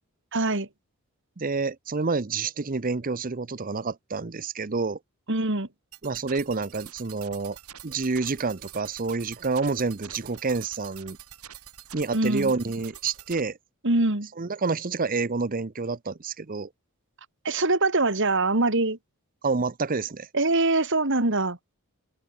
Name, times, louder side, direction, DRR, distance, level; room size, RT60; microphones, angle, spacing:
voice 1, 0.3-0.7 5.3-5.7 12.1-12.5 13.8-14.3 17.4-19.0 20.3-21.6, right 2 dB, 55° right, 2.7 m, -23 dB
voice 2, 1.4-5.0 6.0-7.6 7.8-11.2 11.9-13.6 14.4-16.7 19.4-20.3, right 4 dB, 40° right, 0.7 m, -28 dB
sound 1, 5.9-13.4, right 10 dB, 80° right, 5.6 m, -46 dB
open air
head